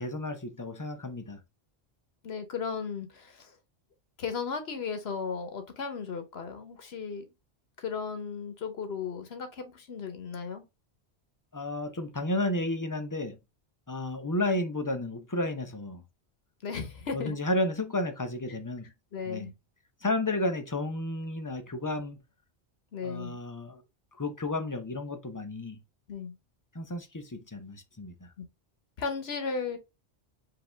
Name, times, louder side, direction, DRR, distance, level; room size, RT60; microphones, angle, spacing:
voice 1, 0.0-1.4 11.5-13.4 13.9-16.0 17.1-18.9 19.3-19.5 20.0-22.2 23.0-23.8 24.2-25.8 26.7-28.3, left 1 dB, 20° left, 0.6 m, -32 dB
voice 2, 2.2-3.5 4.2-7.2 7.8-10.6 16.6-17.4 18.5-18.6 19.1-19.5 22.9-23.4 26.1-26.3 29.0-29.8, left 5 dB, 70° left, 1.2 m, -35 dB
5.0 x 2.8 x 3.3 m
omnidirectional pair, 1.1 m